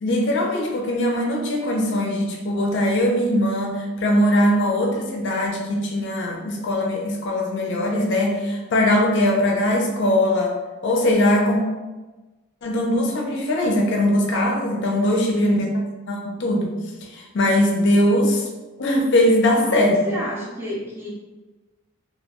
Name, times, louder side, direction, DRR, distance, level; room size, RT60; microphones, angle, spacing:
voice 1, 0.0-10.5 10.8-11.6 12.6-15.7 16.1-16.8 17.0-18.5 18.8-20.0, left 1 dB, 55° left, 1 dB, 0.4 m, -21 dB
voice 2, 15.2-15.6 19.7-21.1, equal, 10° right, -4 dB, 0.4 m, -31 dB
2.3 x 2.1 x 2.8 m, 1.2 s
head